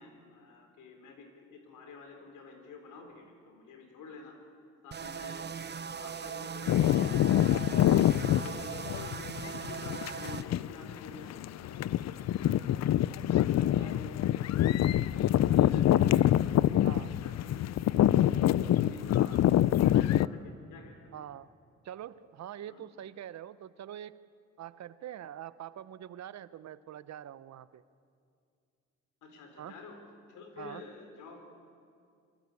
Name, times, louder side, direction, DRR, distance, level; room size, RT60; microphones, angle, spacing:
voice 1, 0.0-4.4 4.8-9.1 9.7-12.9 13.3-18.0 18.4-21.1 22.7-22.8 29.2-30.0 30.3-31.4, left 3 dB, 85° left, 5 dB, 4.1 m, -50 dB
sound 1, 4.9-10.4, right 7 dB, 35° right, 0.9 m, -40 dB
sound 2, 6.7-20.3, left 12 dB, 60° left, 0.6 m, -26 dB
voice 2, 18.6-19.0 21.1-21.5 21.8-24.2 24.6-27.8 29.6-29.8 30.6-30.8, right 11 dB, 60° right, 16 dB, 0.9 m, -44 dB
24.0 x 23.5 x 8.4 m, 2.3 s
cardioid pair, 90°, 30 cm